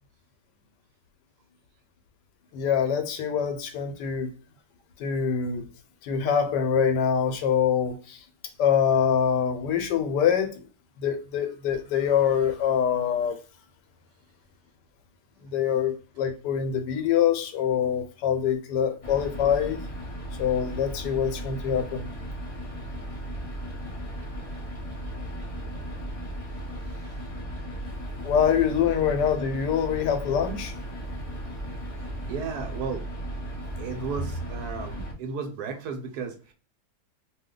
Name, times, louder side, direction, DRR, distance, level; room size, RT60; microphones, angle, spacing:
voice 1, 2.5-4.3 5.0-5.6 6.0-8.2 8.6-10.6 11.0-13.4 15.4-19.8 20.4-22.1 28.2-30.7, left 8 dB, 85° left, 1.3 m, -25 dB
sound 1, 19.0-35.1, right 1 dB, 50° left, 0.4 m, -36 dB
voice 2, 32.2-33.0 33.8-36.5, right 5 dB, 75° right, 1.2 m, -33 dB
2.7 x 2.2 x 3.6 m
omnidirectional pair, 1.8 m